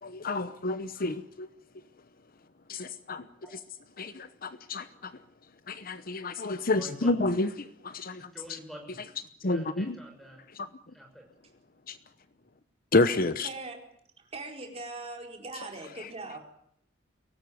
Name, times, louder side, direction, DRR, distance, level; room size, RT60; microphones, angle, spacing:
voice 1, 0.0-1.5 2.7-3.3 4.0-5.1 5.7-8.6 9.4-10.0 10.5-10.7 11.9-12.0 12.9-13.5, left 2 dB, 50° left, 0.9 m, -29 dB
voice 2, 6.6-7.1 8.3-9.0 9.4-10.4 10.9-11.3, equal, ahead, 6.1 m, -47 dB
voice 3, 13.4-13.8 14.2-16.4, right 3 dB, 30° right, 4.7 m, -40 dB
23.5 x 18.0 x 9.5 m
head